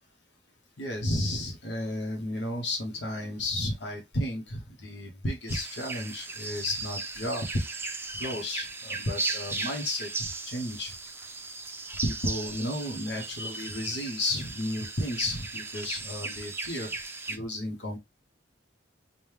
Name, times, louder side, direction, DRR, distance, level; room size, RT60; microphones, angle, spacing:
voice 1, 0.8-7.4 8.2-10.9 12.0-16.9 17.3-18.0, left 1 dB, 70° left, 1.1 m, -33 dB
sound 1, 5.5-17.4, right 3 dB, 15° right, 0.5 m, -37 dB
5.2 x 2.2 x 3.3 m
head